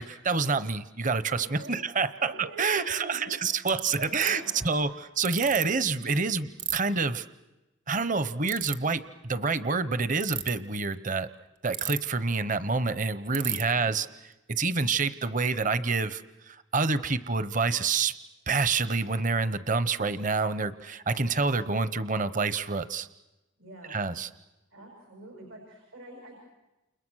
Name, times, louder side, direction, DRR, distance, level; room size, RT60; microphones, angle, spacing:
voice 1, 0.0-2.3 2.6-4.9 5.2-7.2 7.9-11.3 11.6-14.1 14.5-16.2 16.5-18.2 18.5-23.1 23.9-24.3, right 4 dB, 40° right, 13 dB, 0.9 m, -27 dB
voice 2, 1.4-1.7 2.1-3.7 4.0-5.0 13.3-13.9 23.6-24.1 24.7-26.4, right 2 dB, 85° right, 0 dB, 6.6 m, -45 dB
Ratchet pawl, 3.0-3.1 3.7-4.3 5.2-5.6 6.6-6.8 8.4-8.7 10.1-10.5 11.7-12.2 12.5-12.6 12.8-12.9 13.3-13.6, right 11 dB, 60° right, 1.4 m, -32 dB
29.5 x 29.5 x 6.4 m, 1.0 s
head